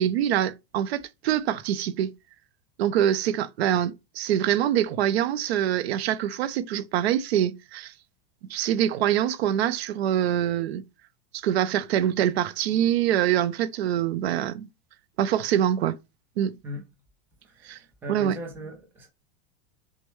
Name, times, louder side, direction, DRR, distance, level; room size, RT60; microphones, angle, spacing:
voice 1, 0.0-2.1 2.8-7.9 8.5-10.8 11.3-14.7 15.2-16.0 16.4-16.5 17.6-17.8 18.1-18.4, right 10 dB, 85° right, 0.6 m, -24 dB
voice 2, 17.4-19.1, left 1 dB, 5° right, 0.5 m, -38 dB
6.4 x 2.1 x 3.1 m
supercardioid pair, 175°, 31 cm